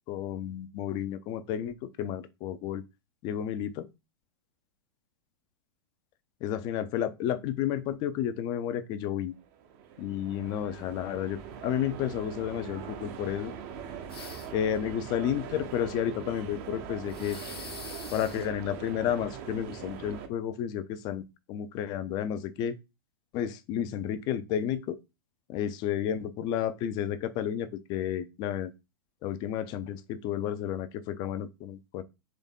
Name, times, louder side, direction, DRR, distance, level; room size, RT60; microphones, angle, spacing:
voice 1, 0.1-2.8 3.2-3.9 6.4-9.3 10.0-13.5 14.5-17.4 18.1-22.8 23.3-25.0 25.5-28.7 29.2-32.0, left 10 dB, 35° left, 0.5 m, -31 dB
sound 1, 9.4-20.3, right 7 dB, 40° right, 0.7 m, -42 dB
sound 2, 14.1-14.7 17.1-18.5, left 4 dB, 80° left, 1.1 m, -44 dB
3.8 x 3.4 x 3.6 m
figure-of-eight pair, 100°, 13 cm